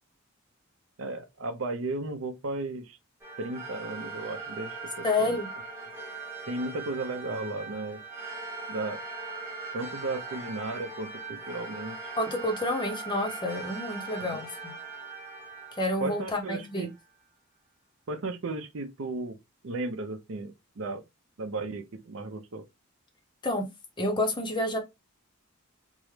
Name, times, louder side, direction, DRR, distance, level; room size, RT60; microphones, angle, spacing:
voice 1, 1.0-3.0 3.4-5.4 6.5-8.0 8.7-9.0 9.7-12.1 14.2-14.4 16.0-16.9 18.1-19.4 19.6-21.0 21.4-22.6, right 2 dB, 65° right, 0.6 m, -35 dB
sound 1, 3.2-17.0, right 4 dB, 10° right, 0.8 m, -40 dB
voice 2, 5.0-5.5 12.2-14.7 15.8-16.9 23.4-23.7 24.0-24.8, left 1 dB, 20° left, 0.6 m, -29 dB
3.5 x 2.0 x 3.1 m
head